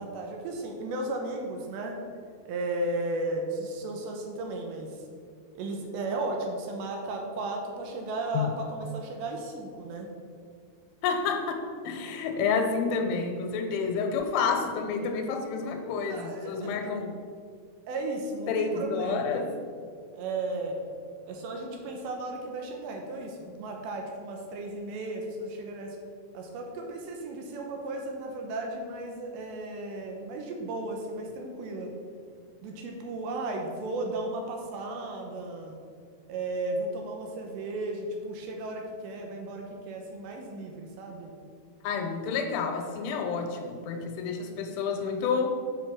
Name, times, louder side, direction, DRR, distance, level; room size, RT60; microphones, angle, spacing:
voice 1, 0.0-2.0 2.5-5.1 5.5-10.1 16.1-16.8 17.9-19.5 20.1-20.8 21.3-26.0 26.3-31.9 32.6-35.8 36.3-41.3, right 2 dB, 75° right, 2 dB, 2.9 m, -35 dB
voice 2, 11.0-11.6 11.8-17.1 18.5-19.5 41.8-45.5, left 5 dB, 85° left, 5 dB, 3.3 m, -29 dB
8.0 x 5.2 x 6.0 m, 2.2 s
omnidirectional pair, 5.4 m